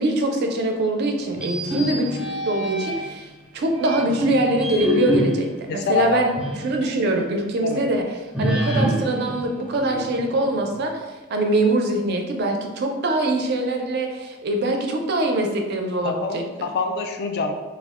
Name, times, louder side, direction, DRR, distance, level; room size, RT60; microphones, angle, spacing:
voice 1, 0.0-2.1 2.5-3.3 3.5-6.3 6.6-8.0 8.4-10.9 11.3-16.7, right 2 dB, 50° right, 3 dB, 0.4 m, -23 dB
sound 1, 1.3-3.2 3.8-6.8 7.1-7.2 8.3-10.4, equal, 5° right, 0.6 m, -26 dB
voice 2, 5.7-6.2 6.7-6.9 7.6-7.8 16.0-17.5, left 4 dB, 50° left, 4 dB, 0.3 m, -25 dB
2.3 x 2.1 x 3.5 m, 1.3 s
head